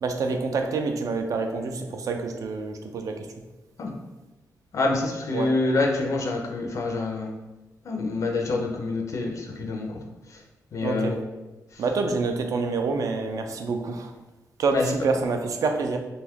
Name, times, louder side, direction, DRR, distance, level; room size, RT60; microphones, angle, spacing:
voice 1, 0.0-3.3 5.3-5.5 10.8-11.2 11.8-14.1 14.6-16.0, right 4 dB, 60° right, 4 dB, 0.3 m, -27 dB
voice 2, 4.7-7.3 7.9-9.9 10.7-11.2 14.7-14.8, left 3 dB, 50° left, 1 dB, 0.4 m, -26 dB
2.6 x 2.3 x 3.4 m, 1.1 s
wide cardioid pair, 155°, 7 cm